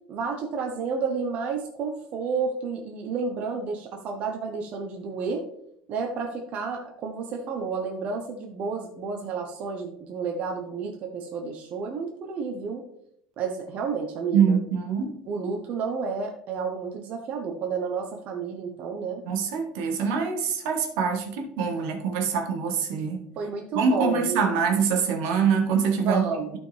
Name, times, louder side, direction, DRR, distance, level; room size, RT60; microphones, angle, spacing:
voice 1, 0.1-5.4 5.9-12.8 13.4-14.6 15.3-19.2 23.4-24.6 26.0-26.6, right 5 dB, 55° right, 2 dB, 1.1 m, -31 dB
voice 2, 14.3-15.2 19.2-23.2 23.7-26.3, right 6 dB, 80° right, 3 dB, 1.5 m, -24 dB
12.0 x 4.5 x 3.4 m, 0.73 s
supercardioid pair, 115°, 3 cm